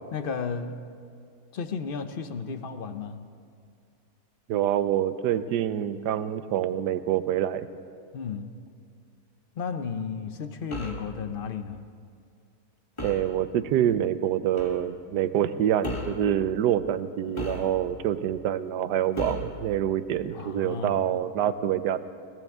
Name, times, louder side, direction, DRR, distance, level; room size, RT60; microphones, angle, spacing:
voice 1, 0.1-0.7 1.5-3.3 8.1-8.5 9.6-11.9 20.3-21.2, left 5 dB, 60° left, 9 dB, 0.5 m, -34 dB
voice 2, 4.5-7.7 13.0-22.0, right 10 dB, 85° right, 13 dB, 1.3 m, -26 dB
sound 1, 10.7-11.1 13.0-13.3 14.6-14.8 15.8-16.2 17.4-18.0 19.2-19.6, left 1 dB, 20° left, 1.4 m, -35 dB
22.0 x 18.0 x 3.6 m, 2.3 s
omnidirectional pair, 1.7 m